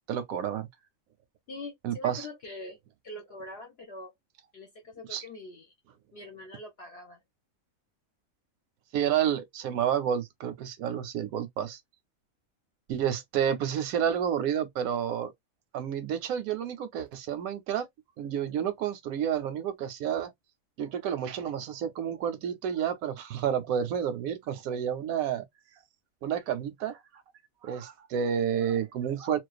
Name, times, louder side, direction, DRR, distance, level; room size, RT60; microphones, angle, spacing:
voice 1, 0.1-0.7 1.8-2.3 5.1-5.2 8.9-11.8 12.9-15.3 15.7-17.9 18.2-20.3 20.8-25.4 26.2-27.0 27.6-29.4, right 9 dB, 90° right, 1.0 m, -30 dB
voice 2, 1.5-2.8 3.0-4.1 4.5-5.7 6.1-7.2, left 2 dB, 60° left, 0.8 m, -43 dB
2.4 x 2.2 x 2.3 m
omnidirectional pair, 1.4 m